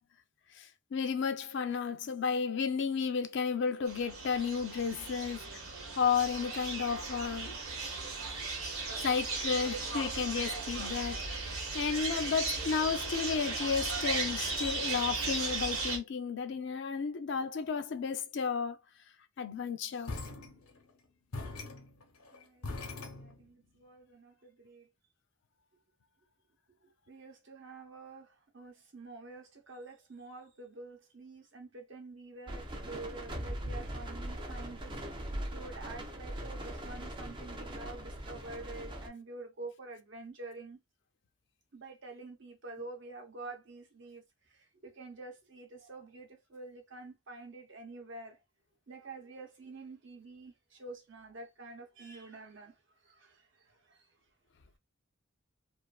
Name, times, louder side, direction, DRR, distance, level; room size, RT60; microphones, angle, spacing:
voice 1, 0.6-5.6 6.0-7.6 9.0-18.8 19.4-20.1, left 6 dB, 55° left, 0.4 m, -33 dB
sound 1, 3.9-16.0, right 3 dB, 85° right, 0.9 m, -36 dB
sound 2, 20.1-21.0 21.3-23.7, left 3 dB, 90° left, 0.7 m, -42 dB
voice 2, 22.3-24.9 27.1-34.9 35.4-40.8 41.7-48.4 48.9-52.7 53.0-54.1, right 3 dB, 55° right, 0.7 m, -48 dB
sound 3, 32.5-39.1, right 1 dB, 20° right, 0.4 m, -40 dB
2.4 x 2.4 x 2.3 m
head